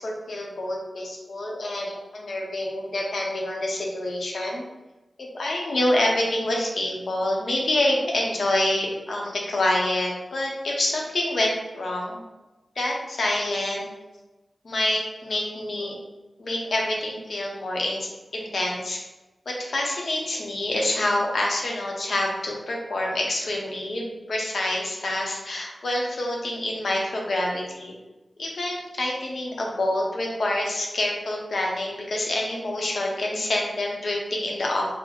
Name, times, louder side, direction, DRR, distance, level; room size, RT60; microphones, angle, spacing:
voice 1, 0.0-4.6 5.2-12.2 12.8-13.9 14.6-16.0 16.4-19.0 19.5-27.9 28.4-34.9, left 1 dB, 80° left, -1 dB, 0.7 m, -27 dB
3.7 x 2.1 x 3.5 m, 1.1 s
wide cardioid pair, 95°, 0 cm